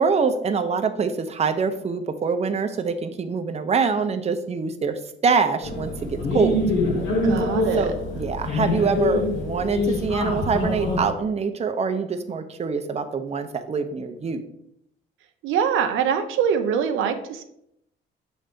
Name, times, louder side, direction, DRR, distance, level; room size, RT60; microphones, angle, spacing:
voice 1, 0.0-6.6 7.8-14.4, right 5 dB, 30° right, 7 dB, 0.7 m, -25 dB
sound 1, 5.6-11.1, left 2 dB, 75° left, 1.2 m, -25 dB
voice 2, 7.2-7.9 15.4-17.4, right 7 dB, 85° right, 7 dB, 0.6 m, -23 dB
6.2 x 3.4 x 5.3 m, 0.77 s
cardioid pair, 90°, 20 cm